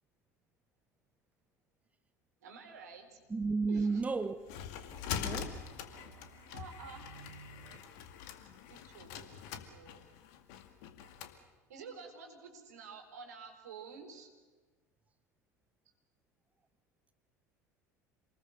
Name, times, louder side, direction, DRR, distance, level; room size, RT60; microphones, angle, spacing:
voice 1, 2.4-3.2 3.7-4.0 6.5-7.1 8.7-10.0 11.7-14.3, right 5 dB, 70° right, 4.1 m, -50 dB
sound 1, 2.8-7.8, right 6 dB, 40° right, 4.7 m, -59 dB
voice 2, 3.3-4.4 5.1-5.6, right 4 dB, 15° right, 0.9 m, -32 dB
sound 2, 4.0-11.4, left 8 dB, 60° left, 2.2 m, -43 dB
28.0 x 20.5 x 6.5 m
figure-of-eight pair, 70°, 9 cm